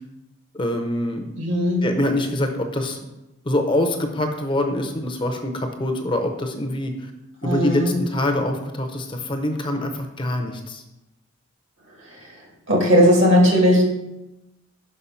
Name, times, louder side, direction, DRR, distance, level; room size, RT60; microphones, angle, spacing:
voice 1, 0.5-1.3 1.8-3.0 3.4-6.9 7.4-10.8, left 1 dB, 25° left, 5 dB, 0.6 m, -24 dB
voice 2, 1.4-1.9 7.4-8.0 12.0-12.3 12.7-13.8, equal, 65° right, -1 dB, 2.3 m, -17 dB
5.4 x 5.4 x 5.6 m, 0.94 s
head